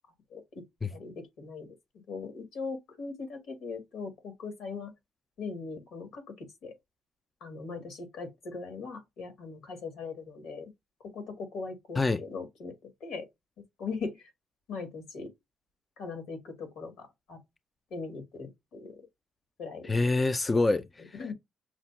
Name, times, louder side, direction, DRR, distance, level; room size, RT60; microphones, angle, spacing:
voice 1, 0.9-1.7 2.1-4.9 5.4-6.8 7.4-10.7 11.1-13.3 13.8-14.3 14.7-15.3 16.0-17.4 17.9-19.0 19.6-19.9 20.7-20.8 21.2-21.3, left 4 dB, 85° left, 2.0 m, -40 dB
voice 2, 19.8-21.3, left 3 dB, 25° left, 0.3 m, -27 dB
5.9 x 2.2 x 2.7 m
cardioid pair, 90°, 0 cm